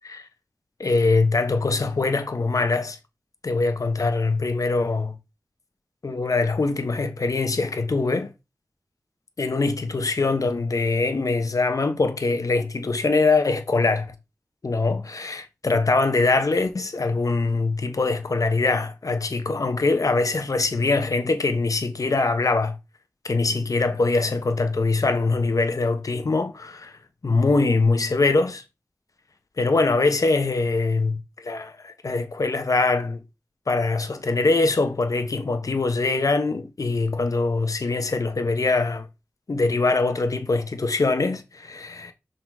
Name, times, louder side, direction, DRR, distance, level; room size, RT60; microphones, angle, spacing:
voice 1, 0.8-3.0 3.4-5.1 6.0-8.3 9.4-14.1 14.6-22.8 23.2-26.9 27.2-28.6 29.6-33.2 33.7-39.1 39.5-42.1, left 3 dB, 65° left, 1.1 m, -23 dB
5.9 x 4.0 x 4.6 m
wide cardioid pair, 50°, 6 cm